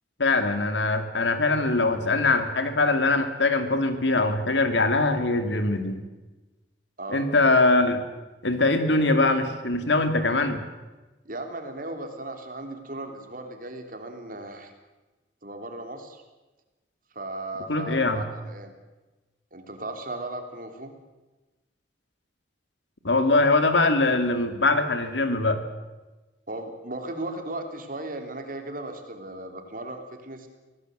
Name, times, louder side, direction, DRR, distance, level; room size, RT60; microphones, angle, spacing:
voice 1, 0.2-6.0 7.1-8.0 8.4-10.6 17.7-18.2 23.0-25.6, left 2 dB, 90° left, 8 dB, 2.6 m, -22 dB
voice 2, 11.2-14.7 15.4-16.2 17.1-18.7 19.5-20.9 26.5-30.5, right 2 dB, 50° right, 5 dB, 3.3 m, -36 dB
24.5 x 17.5 x 8.0 m, 1.1 s
head